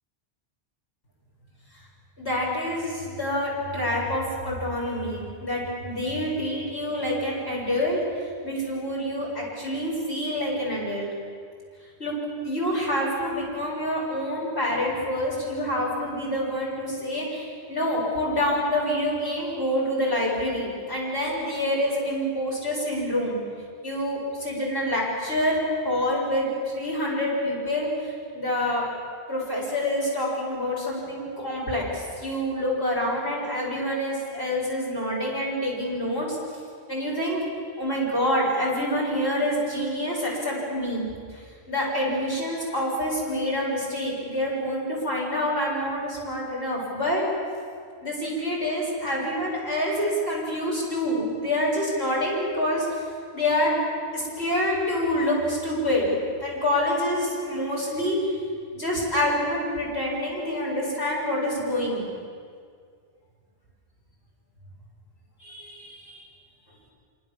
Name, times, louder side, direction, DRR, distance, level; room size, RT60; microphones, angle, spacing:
voice 1, 2.2-8.0 8.4-11.1 12.0-12.2 12.4-23.4 23.8-28.8 29.3-36.4 36.9-37.4 37.8-41.0 41.3-47.2 48.0-52.9 53.3-53.8 54.1-58.2 58.7-62.1 65.4-66.2, left 1 dB, 75° left, -4 dB, 7.8 m, -27 dB
26.5 x 25.5 x 7.4 m, 2.1 s
omnidirectional pair, 1.1 m